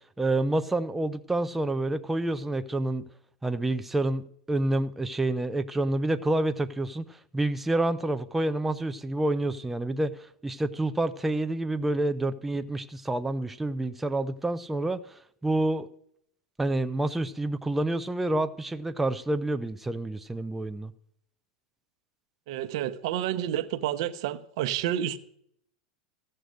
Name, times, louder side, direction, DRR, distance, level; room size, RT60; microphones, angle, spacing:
voice 1, 0.2-3.0 3.4-4.2 4.5-15.1 15.4-15.9 16.6-20.9, right 2 dB, 5° right, 0.5 m, -28 dB
voice 2, 22.5-25.2, right 11 dB, 65° right, 0.8 m, -29 dB
15.5 x 6.7 x 6.4 m
supercardioid pair, 120°, 3 cm